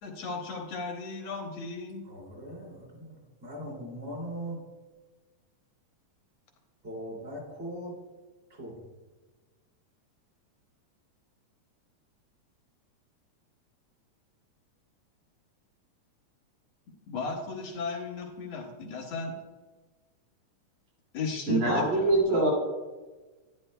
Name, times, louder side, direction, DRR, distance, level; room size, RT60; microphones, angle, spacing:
voice 1, 0.0-2.0 17.1-19.4 21.1-22.5, left 4 dB, 70° left, 2 dB, 1.9 m, -35 dB
voice 2, 2.0-4.6 6.8-7.9 8.5-8.8, equal, 25° right, -4 dB, 2.6 m, -40 dB
voice 3, 21.5-22.5, right 2 dB, 85° right, -3 dB, 3.9 m, -24 dB
10.5 x 10.0 x 2.2 m, 1.2 s
omnidirectional pair, 3.4 m